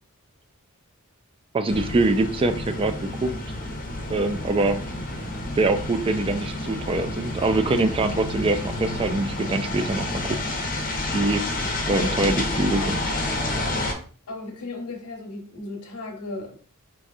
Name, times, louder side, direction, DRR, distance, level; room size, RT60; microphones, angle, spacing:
voice 1, 1.5-3.3 4.1-4.8 5.6-10.4 11.1-11.5 11.9-13.0, right 2 dB, 25° right, 9 dB, 0.3 m, -24 dB
sound 1, 1.7-13.9, left 1 dB, 40° left, 0.7 m, -29 dB
sound 2, 4.4-10.2, right 3 dB, 90° right, 1.4 m, -44 dB
voice 2, 12.0-12.4 12.8-12.9 14.3-16.7, left 2 dB, 80° left, 2 dB, 0.9 m, -36 dB
4.5 x 2.6 x 2.4 m, 0.43 s
head